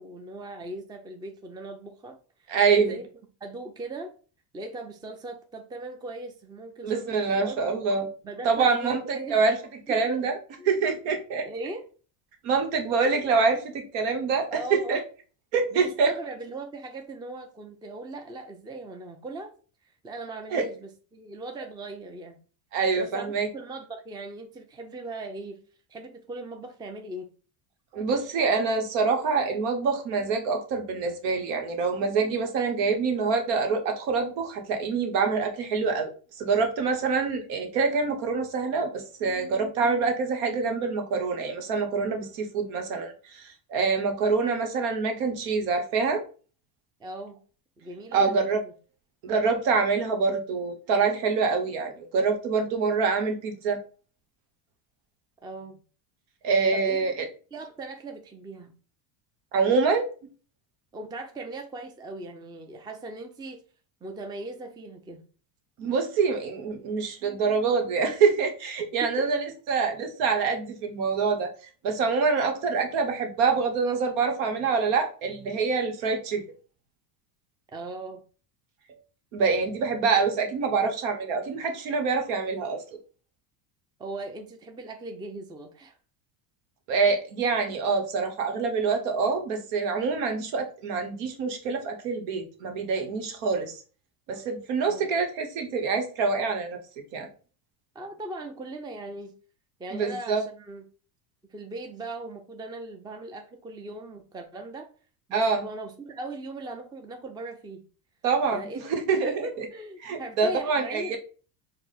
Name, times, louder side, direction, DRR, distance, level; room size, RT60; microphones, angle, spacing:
voice 1, 0.0-2.2 2.4-3.0 3.4-4.1 4.5-7.6 8.2-9.4 9.9-10.3 10.6-10.7 11.4-11.8 14.5-15.0 15.7-19.5 20.0-22.4 23.0-25.6 25.9-27.3 47.0-47.4 47.8-48.6 55.4-55.8 56.7-57.0 57.5-58.7 60.9-63.6 64.0-65.2 69.0-69.4 77.7-78.2 84.0-86.0 94.8-95.1 97.9-99.3 99.8-100.8 101.5-104.9 105.3-107.8 108.4-108.8 109.2-111.2, right 2 dB, 10° right, 4 dB, 0.4 m, -39 dB
voice 2, 2.5-3.0 6.8-8.1 8.4-9.6 9.9-10.3 10.7-11.5 12.4-15.0 15.5-16.1 20.5-20.6 22.7-23.5 27.9-36.1 36.4-46.2 48.1-48.6 49.2-53.8 56.4-57.2 59.5-60.1 65.8-71.5 71.8-76.4 79.3-82.8 86.9-93.7 94.3-96.8 97.1-97.3 99.9-100.4 105.3-105.6 108.2-108.7 109.1-109.5 110.0-111.2, right 4 dB, 70° right, 4 dB, 1.2 m, -25 dB
4.6 x 2.1 x 4.0 m, 0.38 s
supercardioid pair, 100°, 50 cm